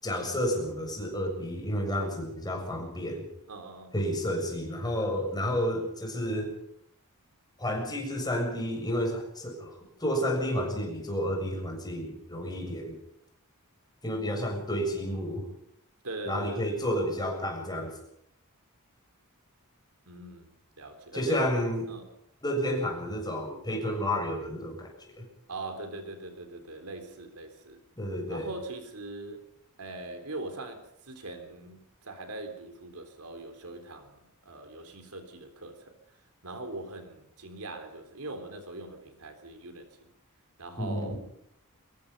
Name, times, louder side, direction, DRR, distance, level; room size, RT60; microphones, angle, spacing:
voice 1, 0.0-3.3 3.9-6.5 7.6-9.7 10.0-12.9 14.0-15.4 16.3-17.9 21.1-21.9 22.4-24.9 25.2-25.3 28.0-28.5 40.8-41.2, equal, 20° left, 7.0 m, -31 dB
voice 2, 3.5-3.9 16.0-16.9 20.1-21.5 21.9-22.1 25.5-27.8 28.3-29.4 29.8-36.0 36.4-40.0 40.6-41.1, right 2 dB, 80° right, 3.8 m, -41 dB
24.0 x 21.5 x 5.5 m
head